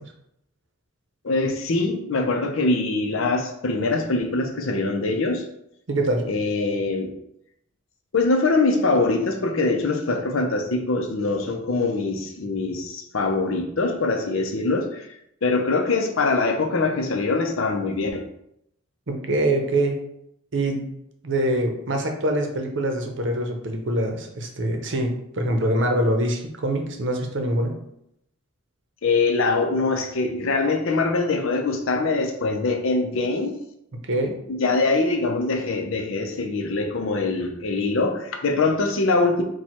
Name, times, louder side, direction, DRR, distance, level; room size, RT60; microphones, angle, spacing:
voice 1, 1.2-5.4 6.3-7.1 8.1-15.1 15.4-18.2 29.0-33.5 34.5-39.4, left 3 dB, 70° left, 4 dB, 0.6 m, -23 dB
voice 2, 5.9-6.2 19.1-20.0 20.5-20.9 21.2-27.7 34.1-34.4, right 1 dB, 60° right, 3 dB, 0.7 m, -24 dB
4.5 x 2.3 x 4.4 m, 0.77 s
head